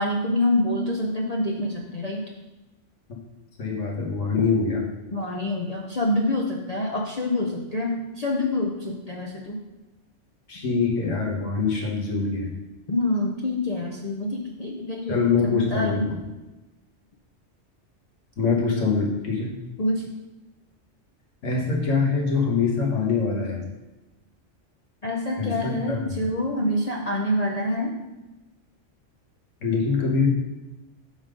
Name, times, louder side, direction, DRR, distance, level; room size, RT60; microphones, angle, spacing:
voice 1, 0.0-2.2 5.1-9.6 12.9-15.2 15.4-16.1 19.8-20.0 25.0-27.9, left 1 dB, 40° left, -1 dB, 0.6 m, -26 dB
voice 2, 3.6-4.8 10.5-12.5 15.1-16.2 18.4-19.6 21.4-23.6 25.4-26.2 29.6-30.3, left 4 dB, 85° left, -2 dB, 1.7 m, -24 dB
7.2 x 3.8 x 5.0 m, 1.1 s
omnidirectional pair, 1.2 m